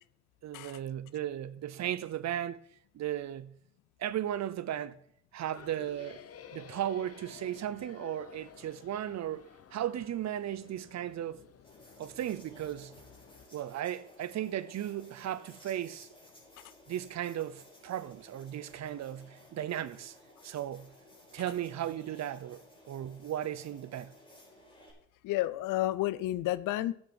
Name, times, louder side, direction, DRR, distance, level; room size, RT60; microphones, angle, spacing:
voice 1, 0.4-2.6 2.9-3.5 4.0-5.0 5.3-6.2 6.5-9.4 9.7-11.4 12.0-12.9 13.5-16.1 16.9-20.2 20.4-20.9 21.3-22.6 22.9-24.1, right 11 dB, 60° right, 0.7 m, -36 dB
sound 1, 5.5-13.5, left 8 dB, 50° left, 0.9 m, -53 dB
sound 2, 11.6-24.9, left 1 dB, 15° left, 4.5 m, -57 dB
voice 2, 25.2-26.9, left 15 dB, 90° left, 0.6 m, -31 dB
7.7 x 7.5 x 7.2 m
cardioid pair, 95°, 31 cm